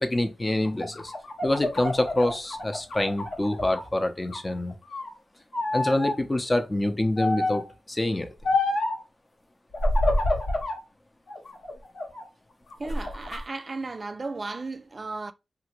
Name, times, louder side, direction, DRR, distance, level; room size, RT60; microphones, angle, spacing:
voice 1, 0.0-1.1 1.4-4.7 5.7-8.3, left 1 dB, 25° left, 0.6 m, -26 dB
sound 1, 0.6-3.9 4.2-5.1 5.5-6.2 7.2-7.7 8.4-9.0 9.7-10.8 11.3-12.2 12.7-13.4, left 2 dB, 80° left, 1.0 m, -28 dB
voice 2, 12.8-15.3, right 3 dB, 45° right, 0.4 m, -35 dB
2.8 x 2.5 x 2.9 m
cardioid pair, 50°, 0 cm